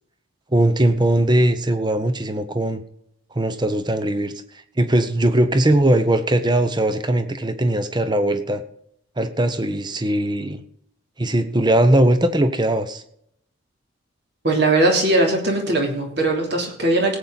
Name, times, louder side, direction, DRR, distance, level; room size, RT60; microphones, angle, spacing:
voice 1, 0.5-2.8 3.3-4.3 4.8-8.6 9.2-10.6 11.2-13.0, right 1 dB, 20° right, 10 dB, 0.9 m, -19 dB
voice 2, 14.4-17.2, right 2 dB, 55° right, 1 dB, 3.1 m, -19 dB
17.5 x 8.7 x 4.1 m, 0.71 s
head